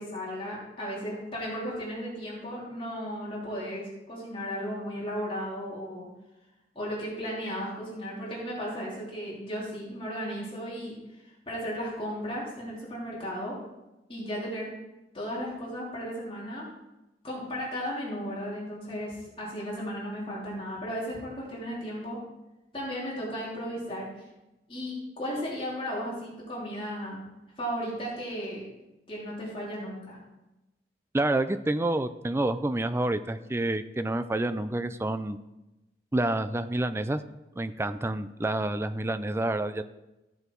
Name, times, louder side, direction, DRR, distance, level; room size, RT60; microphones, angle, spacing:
voice 1, 0.0-6.1 6.7-13.6 14.1-14.7 15.1-16.7 17.2-22.2 22.7-24.3 24.7-27.2 27.6-28.6 29.1-30.2, equal, 30° left, -6 dB, 3.1 m, -35 dB
voice 2, 31.1-35.4 36.1-37.2 37.6-39.8, right 1 dB, 15° right, 11 dB, 0.4 m, -28 dB
14.5 x 6.7 x 4.6 m, 0.98 s
head